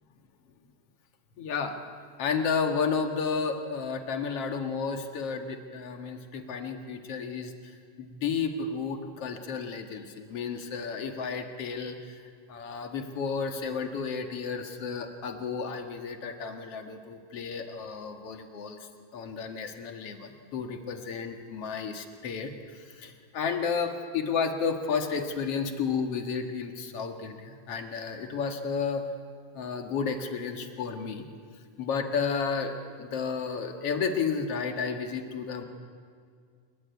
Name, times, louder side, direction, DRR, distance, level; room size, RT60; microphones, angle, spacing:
voice 1, 1.4-1.8 2.2-12.2 12.5-29.0 29.5-31.2 31.8-35.6, left 5 dB, 50° left, 5 dB, 2.0 m, -32 dB
27.5 x 22.5 x 9.4 m, 2.1 s
omnidirectional pair, 4.8 m